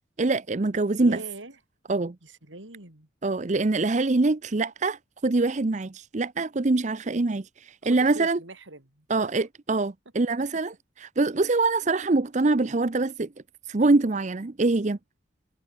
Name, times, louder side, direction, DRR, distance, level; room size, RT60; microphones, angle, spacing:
voice 1, 0.2-1.2 1.9-2.2 3.2-8.4 9.1-13.3 13.7-15.0, right 3 dB, 40° right, 0.6 m, -24 dB
voice 2, 1.0-1.6 2.2-3.1 7.8-9.3, right 2 dB, 85° right, 4.2 m, -42 dB
head